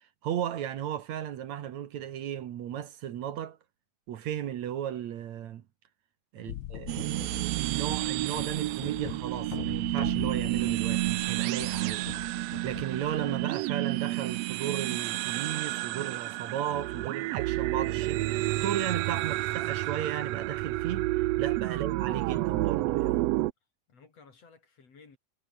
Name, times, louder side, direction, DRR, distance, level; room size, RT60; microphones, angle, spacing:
voice 1, 0.2-3.6 4.1-5.6 6.3-12.0 12.6-23.2, right 10 dB, 65° right, 2.5 m, -35 dB
sound 1, 6.5-13.4, left 13 dB, 75° left, 1.2 m, -42 dB
sound 2, 6.9-23.5, right 18 dB, 85° right, 1.4 m, -30 dB
voice 2, 23.9-25.2, left 5 dB, 55° left, 5.0 m, -57 dB
omnidirectional pair, 3.5 m